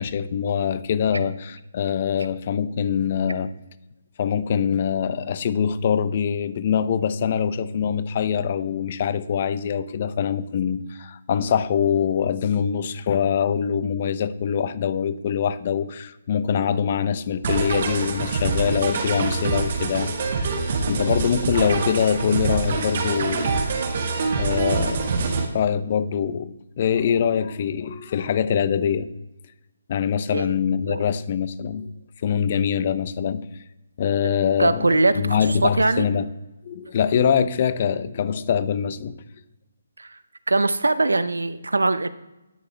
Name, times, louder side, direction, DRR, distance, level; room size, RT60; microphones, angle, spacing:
voice 1, 0.0-3.5 4.2-20.5 20.9-23.6 24.4-25.3 25.5-29.1 29.9-31.9 32.2-33.5 34.0-36.3 36.6-39.2, left 7 dB, 40° left, 14 dB, 0.7 m, -24 dB
sound 1, 17.4-25.5, right 4 dB, 50° right, 1.8 m, -25 dB
voice 2, 34.6-36.0 40.0-40.2 40.5-42.1, right 2 dB, 90° right, 13 dB, 0.7 m, -21 dB
11.5 x 9.8 x 3.4 m, 0.96 s
figure-of-eight pair, 150°, 0 cm